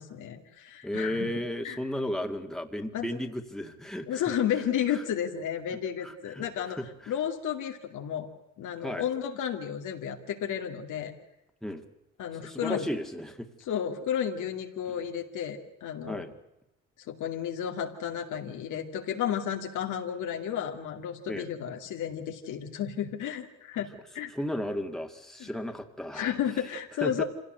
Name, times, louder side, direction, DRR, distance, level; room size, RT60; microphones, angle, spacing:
voice 1, 0.0-1.3 1.6-1.8 2.9-3.1 4.1-6.8 7.1-8.3 8.6-11.1 12.2-12.9 13.7-16.2 17.1-24.3 25.4-25.5 26.1-27.2, left 9 dB, 80° left, 4 dB, 2.5 m, -32 dB
voice 2, 0.8-4.2 4.9-5.0 6.0-7.1 8.8-9.0 11.6-11.8 12.4-13.5 16.1-16.3 21.3-21.5 24.3-26.3 27.0-27.2, left 1 dB, ahead, 5 dB, 2.1 m, -34 dB
25.5 x 17.0 x 7.9 m, 0.90 s
cardioid pair, 90°, 30 cm